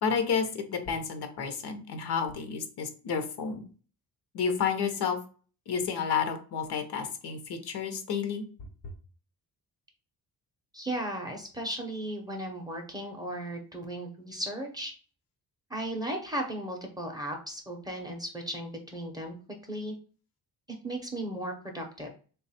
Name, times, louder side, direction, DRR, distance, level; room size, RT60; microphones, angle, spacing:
voice 1, 0.0-3.6 4.3-5.2 5.7-8.4, left 6 dB, 70° left, 7 dB, 0.8 m, -30 dB
voice 2, 10.7-14.9 15.7-19.4 19.7-19.9 20.8-22.1, right 1 dB, 10° right, 1 dB, 0.5 m, -36 dB
3.3 x 2.3 x 4.1 m, 0.39 s
wide cardioid pair, 160°, 40 cm